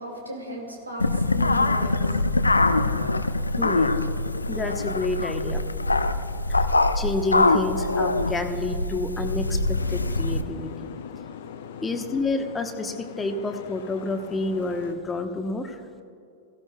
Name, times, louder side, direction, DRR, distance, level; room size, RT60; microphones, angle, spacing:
voice 1, 0.0-2.5, right 1 dB, 80° right, 0 dB, 2.5 m, -37 dB
sound 1, 1.0-10.4, left 2 dB, 80° left, 0.5 m, -23 dB
voice 2, 3.6-3.9 4.5-5.6 6.5-6.6 6.9-10.7 11.8-15.8, left 2 dB, 15° left, 5 dB, 1.2 m, -29 dB
Boat Water vehicle, 9.8-14.9, left 7 dB, 60° left, 0.9 m, -41 dB
17.0 x 16.0 x 2.4 m, 2.4 s
figure-of-eight pair, 90°, 0 cm